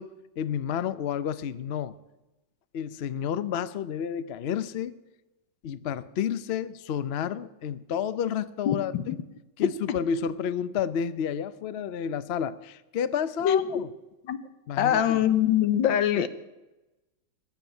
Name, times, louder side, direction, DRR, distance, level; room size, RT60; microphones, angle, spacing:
voice 1, 0.0-2.0 2.7-5.0 5.6-9.2 9.6-13.9 14.7-15.2, left 8 dB, 65° left, 15 dB, 0.6 m, -30 dB
voice 2, 8.7-9.2 13.4-13.8 14.3-14.4 14.8-16.3, left 10 dB, 90° left, 13 dB, 1.7 m, -23 dB
20.5 x 7.2 x 9.4 m, 1.0 s
omnidirectional pair, 2.0 m